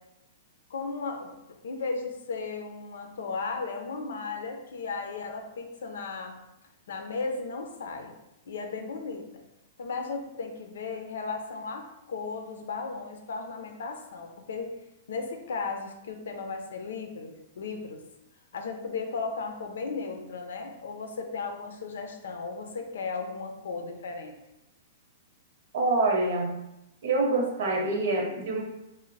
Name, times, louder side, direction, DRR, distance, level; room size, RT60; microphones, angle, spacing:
voice 1, 0.7-1.3 1.6-6.3 6.9-8.1 8.5-9.2 9.8-14.7 15.1-18.0 18.5-24.4, left 4 dB, 85° left, 4 dB, 0.6 m, -35 dB
voice 2, 25.7-26.6 27.0-28.6, right 2 dB, 60° right, 2 dB, 0.8 m, -26 dB
3.2 x 2.1 x 3.9 m, 0.90 s
hypercardioid pair, 165°, 0 cm